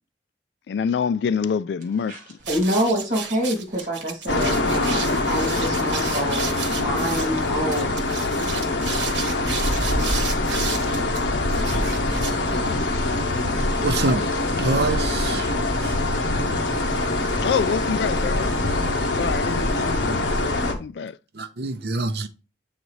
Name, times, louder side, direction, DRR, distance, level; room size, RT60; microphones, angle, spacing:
voice 1, 0.7-2.4 10.8-10.9 17.4-18.5 19.1-20.2 20.6-21.2, left 6 dB, 70° left, 0.3 m, -26 dB
sound 1, 2.4-12.9, right 3 dB, 85° right, 1.1 m, -30 dB
voice 2, 2.5-7.9, equal, 45° right, 2.3 m, -26 dB
sound 2, 4.3-20.7, left 2 dB, 85° left, 1.0 m, -24 dB
voice 3, 13.8-14.2 14.6-15.5 15.8-15.9 21.3-22.3, right 3 dB, 60° right, 0.6 m, -25 dB
7.8 x 4.0 x 3.1 m
head